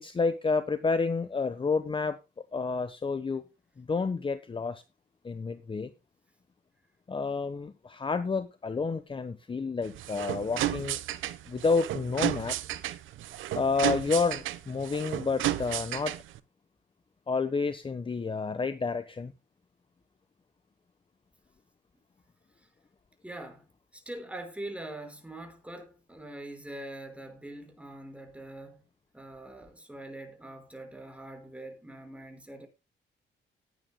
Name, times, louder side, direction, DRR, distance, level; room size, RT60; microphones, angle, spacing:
voice 1, 0.0-2.2 2.5-3.4 3.8-4.8 5.2-5.9 7.1-11.0 11.5-12.6 13.5-16.2 17.3-19.3, left 4 dB, 25° left, 1.0 m, -30 dB
sound 1, 9.8-16.4, right 14 dB, 85° right, 1.1 m, -33 dB
voice 2, 23.2-23.7 23.9-28.8 29.1-32.7, right 1 dB, 5° right, 5.2 m, -43 dB
18.5 x 9.7 x 2.2 m
cardioid pair, 90°, 20 cm